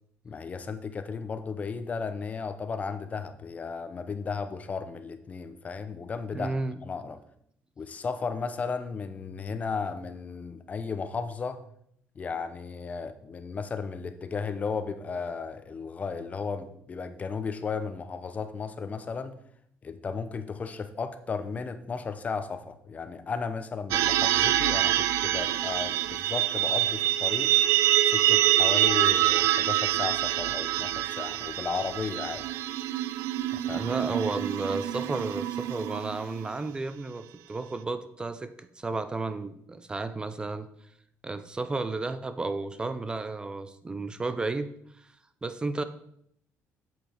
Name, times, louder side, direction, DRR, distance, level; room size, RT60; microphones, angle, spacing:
voice 1, 0.2-6.6 6.8-7.2 7.8-11.6 12.1-19.3 19.8-27.5 28.0-32.5 33.5-33.9, left 5 dB, 30° left, 10 dB, 0.8 m, -34 dB
voice 2, 6.3-6.8 33.7-40.7 41.2-44.7 45.0-45.1 45.4-45.8, right 3 dB, 15° right, 11 dB, 0.6 m, -32 dB
sound 1, 23.9-36.4, right 13 dB, 85° right, 0.4 m, -26 dB
8.2 x 7.8 x 4.4 m, 0.70 s
cardioid pair, 140°, 5 cm